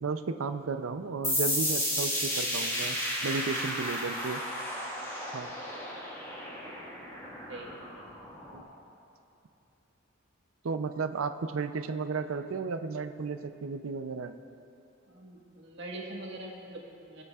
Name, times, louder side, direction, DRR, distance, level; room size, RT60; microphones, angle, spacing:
voice 1, 0.0-3.0 3.2-4.4 5.3-5.5 8.5-8.6 10.6-14.3, right 4 dB, 80° right, 9 dB, 0.5 m, -33 dB
sound 1, 1.2-8.6, equal, 15° left, 1.5 m, -33 dB
voice 2, 7.5-8.0 15.1-17.2, right 1 dB, 60° right, -1 dB, 1.5 m, -44 dB
20.5 x 8.1 x 2.4 m, 2.7 s
head